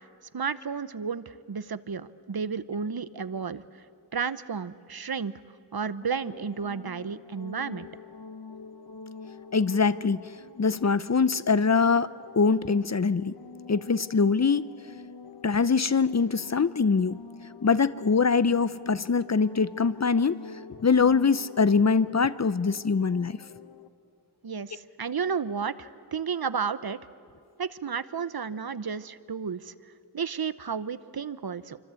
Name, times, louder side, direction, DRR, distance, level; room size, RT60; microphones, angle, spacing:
voice 1, 0.3-3.6 4.1-5.3 5.7-7.9 24.4-27.0 27.6-29.7 30.1-31.8, right 6 dB, 65° right, 15 dB, 0.8 m, -32 dB
sound 1, 6.0-23.9, left 4 dB, 85° left, 1.3 m, -46 dB
voice 2, 9.5-10.2 10.6-13.3 13.7-14.7 15.4-17.2 17.6-20.4 20.8-23.4, left 5 dB, 40° left, 16 dB, 0.6 m, -23 dB
27.5 x 25.0 x 8.4 m, 2.3 s
wide cardioid pair, 60°, 40 cm